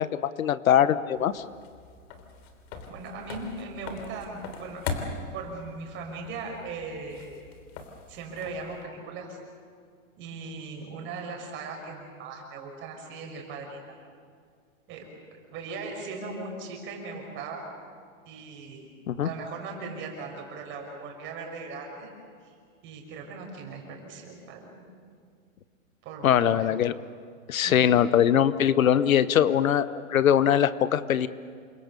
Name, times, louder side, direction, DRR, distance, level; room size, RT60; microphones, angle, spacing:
voice 1, 0.0-1.4 19.1-19.3 26.2-26.9 27.5-31.3, left 9 dB, 80° left, 14 dB, 1.1 m, -22 dB
sound 1, 1.2-8.8, left 5 dB, 45° left, 3.5 m, -40 dB
voice 2, 2.8-4.8 5.3-7.3 8.1-9.4 10.2-13.9 14.9-17.6 18.2-18.9 19.2-22.1 22.4-22.6 22.8-24.8 26.0-26.7 27.6-27.8, right 4 dB, 30° right, 1 dB, 6.3 m, -39 dB
28.5 x 24.5 x 6.8 m, 2.1 s
hypercardioid pair, 145°, 41 cm